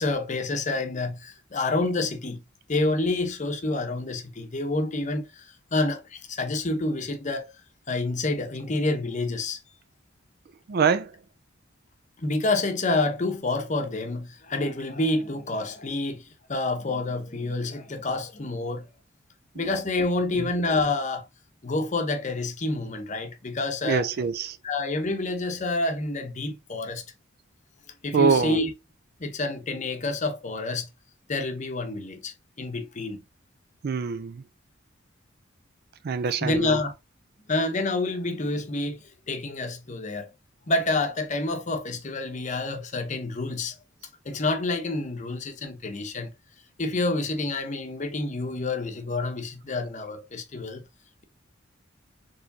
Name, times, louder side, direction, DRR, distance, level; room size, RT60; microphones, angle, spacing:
voice 1, 0.0-2.4 2.7-7.5 7.9-9.6 12.2-18.9 19.5-21.2 21.6-24.1 24.6-27.0 28.0-28.7 29.2-30.9 31.3-33.2 36.4-36.9 37.5-40.3 40.7-43.8 44.2-46.3 46.8-50.8, left 2 dB, 40° left, 0.8 m, -28 dB
voice 2, 10.7-11.2 19.6-19.7 20.4-20.5 23.8-24.6 28.1-28.6 33.8-34.4 36.0-36.8, right 5 dB, 50° right, 0.4 m, -24 dB
4.5 x 3.1 x 2.6 m
head